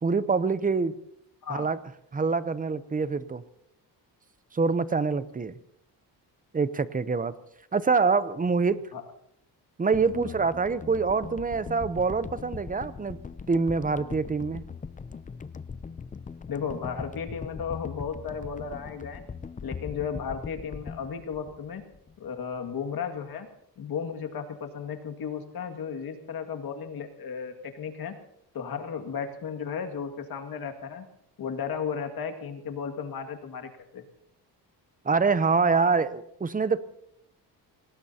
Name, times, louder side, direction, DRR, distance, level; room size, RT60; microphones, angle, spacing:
voice 1, 0.0-0.9 1.5-1.8 2.1-3.4 4.5-5.5 6.5-7.3 7.7-8.8 9.8-13.2 13.5-14.7 35.0-36.9, right 4 dB, 20° right, 15 dB, 0.7 m, -25 dB
sound 1, 9.9-22.3 22.6-22.7, left 5 dB, 20° left, 0.5 m, -40 dB
voice 2, 16.5-19.2 19.6-21.8 22.2-23.5 23.8-28.1 28.5-31.0 31.4-34.0, left 6 dB, 60° left, 5 dB, 2.2 m, -34 dB
26.5 x 19.0 x 2.9 m, 0.76 s
cardioid pair, 115°, 41 cm